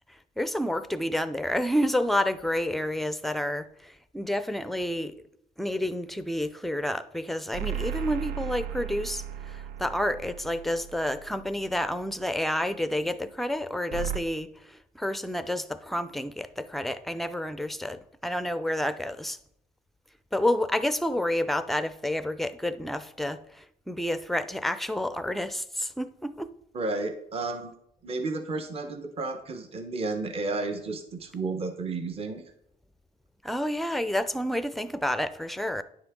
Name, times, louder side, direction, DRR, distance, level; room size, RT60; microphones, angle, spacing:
voice 1, 0.1-5.1 5.6-19.4 20.3-26.5 33.4-35.8, left 1 dB, ahead, 0.5 m, -29 dB
sound 1, 7.5-12.1 13.9-14.2, right 10 dB, 65° right, 0.5 m, -36 dB
voice 2, 26.7-27.7 28.0-32.4, right 3 dB, 35° right, 1.0 m, -32 dB
9.7 x 6.3 x 3.6 m
cardioid pair, 110°, 17 cm